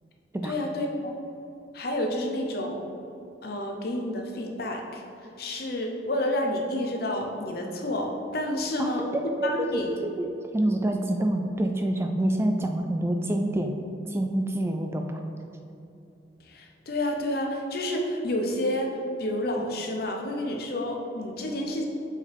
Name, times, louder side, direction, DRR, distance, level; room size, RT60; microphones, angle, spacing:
voice 1, 0.4-1.1 1.7-2.8 3.4-5.0 5.4-9.1 9.4-9.9 16.4-21.8, left 1 dB, 60° left, 1 dB, 0.8 m, -29 dB
voice 2, 9.4-10.3 10.5-13.7 14.1-15.2, right 1 dB, 15° right, 4 dB, 0.3 m, -27 dB
6.9 x 4.6 x 3.5 m, 2.8 s
head